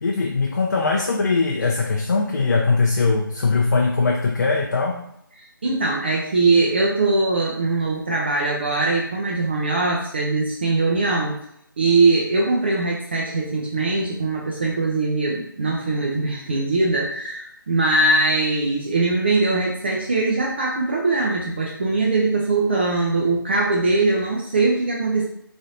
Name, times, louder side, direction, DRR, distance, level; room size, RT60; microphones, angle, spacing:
voice 1, 0.0-5.0, left 4 dB, 50° left, 0 dB, 0.4 m, -21 dB
voice 2, 5.6-11.3 11.8-25.2, right 3 dB, 30° right, -3 dB, 0.4 m, -21 dB
3.2 x 2.6 x 2.7 m, 0.74 s
figure-of-eight pair, 160°, 12 cm